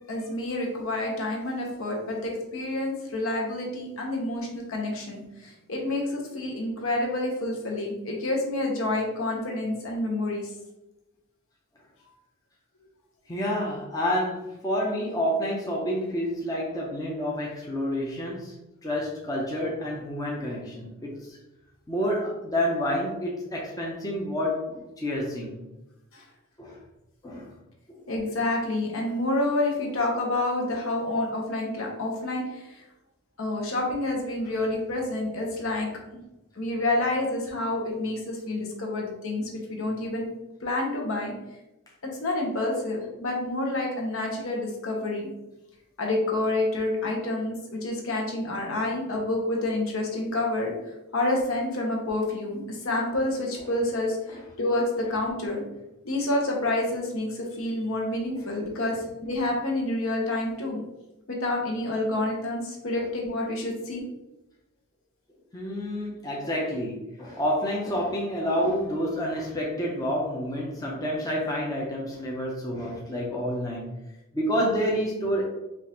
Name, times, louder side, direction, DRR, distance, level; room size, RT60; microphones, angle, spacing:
voice 1, 0.1-10.5 26.1-26.2 28.1-32.8 33.4-35.9 36.6-40.3 40.6-41.3 42.2-45.3 46.0-50.7 51.1-55.6 56.0-60.8 61.3-64.0, left 2 dB, 65° left, 0 dB, 1.0 m, -28 dB
voice 2, 13.3-18.5 18.8-21.4 21.9-25.5 26.6-26.8 27.2-27.5 27.9-28.0 54.3-54.4 63.0-63.1 65.5-73.9 74.3-75.4, equal, 15° left, -3 dB, 0.6 m, -29 dB
5.3 x 2.5 x 3.0 m, 0.97 s
head